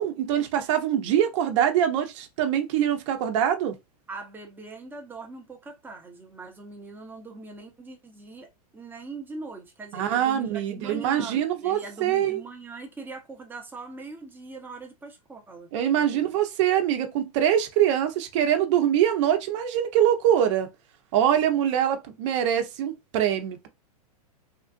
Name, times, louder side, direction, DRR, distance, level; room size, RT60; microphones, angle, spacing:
voice 1, 0.0-3.7 9.9-12.4 15.7-20.7 21.1-23.7, right 10 dB, 50° right, 0.9 m, -24 dB
voice 2, 0.6-1.2 4.1-8.5 8.7-16.3, right 3 dB, 10° right, 0.9 m, -41 dB
3.6 x 2.5 x 2.5 m
hypercardioid pair, 125°, 20 cm